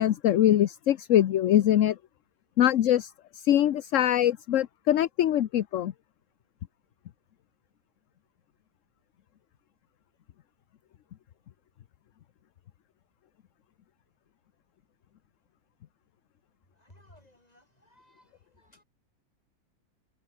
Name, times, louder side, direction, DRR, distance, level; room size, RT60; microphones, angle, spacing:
voice 1, 0.0-2.0 2.6-5.9, left 11 dB, 60° left, 1.0 m, -23 dB
voice 2, 16.8-18.8, left 1 dB, 25° left, 7.2 m, -59 dB
omnidirectional pair, 1.6 m